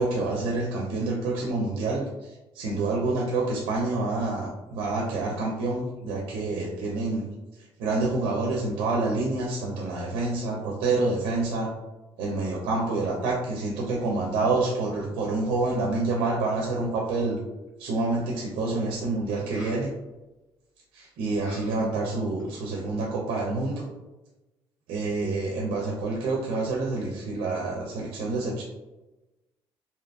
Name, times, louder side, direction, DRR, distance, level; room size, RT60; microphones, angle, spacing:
voice 1, 0.0-7.3 7.6-11.7 12.2-17.4 17.8-19.9 20.9-23.8 24.9-28.6, right 3 dB, 90° right, -2 dB, 0.5 m, -27 dB
sound 1, 17.7-17.8 19.3-19.9 21.4-22.0 22.4-23.0, equal, 85° left, 1.4 m, -48 dB
2.7 x 2.3 x 2.3 m, 1.0 s
cardioid pair, 105°, 9 cm